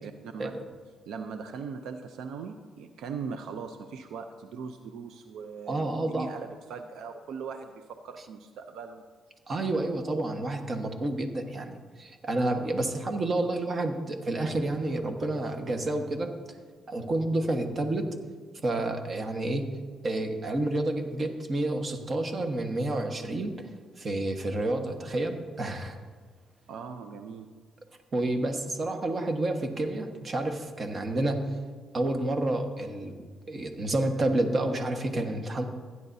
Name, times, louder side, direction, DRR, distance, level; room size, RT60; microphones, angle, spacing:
voice 1, 0.0-0.6 1.1-9.1 26.7-27.6, right 5 dB, 80° right, 7 dB, 0.5 m, -40 dB
voice 2, 5.7-6.3 9.5-16.3 16.9-18.1 18.6-19.6 20.0-23.5 24.0-26.0 28.1-31.5 31.9-33.2 33.5-35.7, right 2 dB, 40° right, 5 dB, 1.3 m, -29 dB
15.5 x 9.8 x 2.7 m, 1.5 s
cardioid pair, 90°, 0 cm